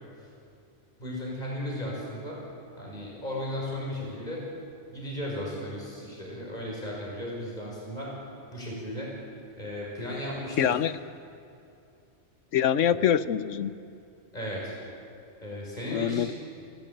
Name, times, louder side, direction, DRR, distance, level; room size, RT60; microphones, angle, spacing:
voice 1, 1.0-2.5 2.8-4.5 4.9-8.2 8.5-9.2 9.6-10.8 14.3-14.7 15.4-16.3, left 1 dB, 35° left, -3 dB, 6.1 m, -35 dB
voice 2, 10.6-10.9 12.5-13.8 15.9-16.3, left 9 dB, 85° left, 14 dB, 1.1 m, -24 dB
29.5 x 17.0 x 9.1 m, 2.6 s
omnidirectional pair, 1.2 m